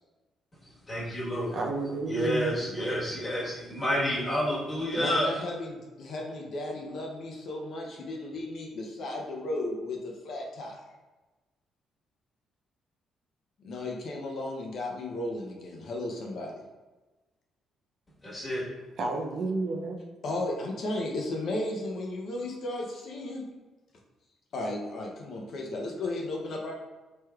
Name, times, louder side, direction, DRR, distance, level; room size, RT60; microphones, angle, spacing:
voice 1, 0.9-1.6 2.1-5.3 18.2-18.6, equal, 30° left, -7 dB, 1.3 m, -29 dB
voice 2, 1.5-2.5 19.0-20.0, right 3 dB, 60° right, 1 dB, 0.4 m, -31 dB
voice 3, 5.0-10.8 13.6-16.6 20.2-23.5 24.5-26.7, left 2 dB, 65° left, -1 dB, 0.5 m, -34 dB
3.2 x 3.1 x 2.3 m, 1.2 s
cardioid pair, 90°, 0 cm